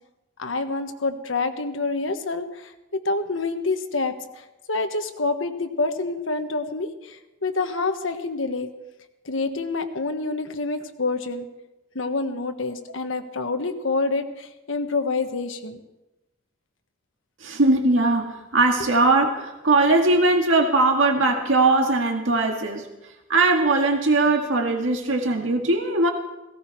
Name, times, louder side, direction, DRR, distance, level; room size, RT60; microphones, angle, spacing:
voice 1, 0.4-2.7 3.0-8.7 9.2-11.5 11.9-15.8, left 3 dB, 80° left, 7 dB, 1.4 m, -27 dB
voice 2, 17.4-22.9 23.3-26.1, right 2 dB, 80° right, 3 dB, 1.9 m, -20 dB
18.0 x 17.0 x 4.7 m, 0.97 s
head